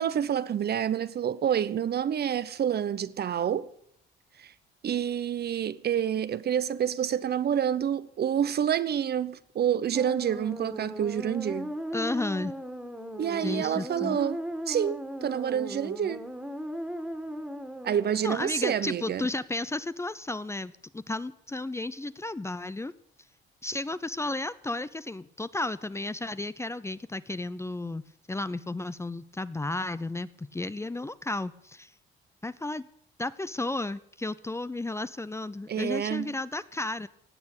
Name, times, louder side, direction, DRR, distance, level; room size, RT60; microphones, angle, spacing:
voice 1, 0.0-3.7 4.4-4.5 4.8-11.7 13.2-14.4 14.7-16.2 17.8-19.3 35.7-36.3, right 9 dB, 55° right, 0.8 m, -28 dB
sound 1, 9.9-18.9, equal, 5° right, 2.1 m, -38 dB
voice 2, 11.9-12.5 13.4-14.2 18.2-22.9 23.6-28.0 28.3-31.9 32.4-32.8 33.2-37.1, left 2 dB, 15° left, 0.6 m, -33 dB
17.0 x 8.7 x 8.3 m
cardioid pair, 90°, 20 cm